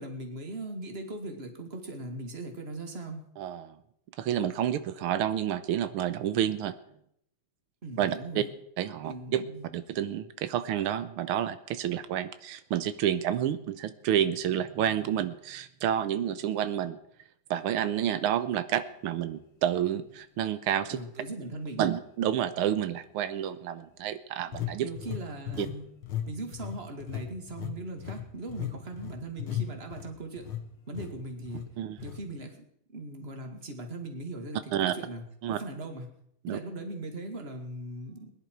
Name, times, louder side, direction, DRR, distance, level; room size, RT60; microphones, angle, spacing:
voice 1, 0.0-3.2 7.8-8.5 9.0-9.7 20.9-21.9 24.8-25.9 26.3-30.5 30.9-31.7 32.0-32.6 32.9-36.1 36.5-38.3, right 2 dB, 30° right, 4 dB, 2.2 m, -39 dB
voice 2, 3.4-3.7 4.2-6.7 8.0-8.4 8.8-9.4 9.7-17.0 17.5-21.0 21.8-24.9 25.6-25.7 31.8-32.0 34.7-34.9 35.4-35.6 36.4-36.6, right 10 dB, 90° right, 12 dB, 1.7 m, -29 dB
sound 1, 20.1-20.2 20.8-21.0 24.5-25.8 26.0-26.3 26.5-30.6 31.0-31.1 31.5-31.7 32.0-32.2, left 10 dB, 85° left, 2.4 m, -36 dB
21.5 x 10.5 x 4.6 m, 0.71 s
omnidirectional pair, 2.3 m